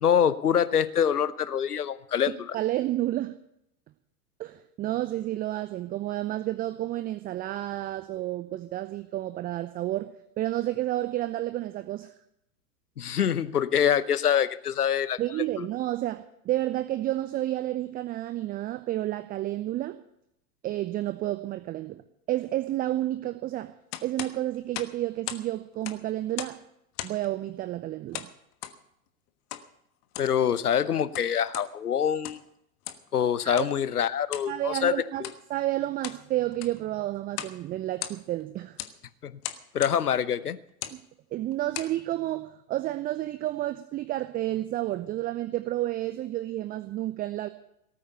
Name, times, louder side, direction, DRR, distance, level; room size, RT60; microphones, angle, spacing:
voice 1, 0.0-2.5 13.0-15.2 15.6-15.7 30.2-32.4 33.1-34.9 35.2-35.3 39.2-39.4 39.7-40.6, left 8 dB, 75° left, 16 dB, 1.0 m, -25 dB
voice 2, 2.5-3.3 4.4-10.1 10.4-12.1 15.2-20.0 20.6-22.0 22.3-23.7 24.0-26.6 27.0-28.3 33.4-33.7 34.5-38.8 40.9-41.0 41.3-47.5, right 14 dB, 20° right, 13 dB, 0.6 m, -30 dB
sound 1, 23.9-25.5 25.7-26.6 26.9-27.3 28.1-28.8 29.5-29.7 30.0-30.4 30.9-31.7 32.1-32.5 32.8-33.1 33.5-33.7 34.3-34.5 35.1-35.4 35.8-36.2 36.5-36.8 37.3-37.6 37.9-38.4 38.8-39.0 39.4-40.0 40.7-41.0 41.5-42.0, left 13 dB, 35° left, 1.3 m, -38 dB
18.0 x 8.9 x 6.6 m, 0.75 s
figure-of-eight pair, 95°, 46 cm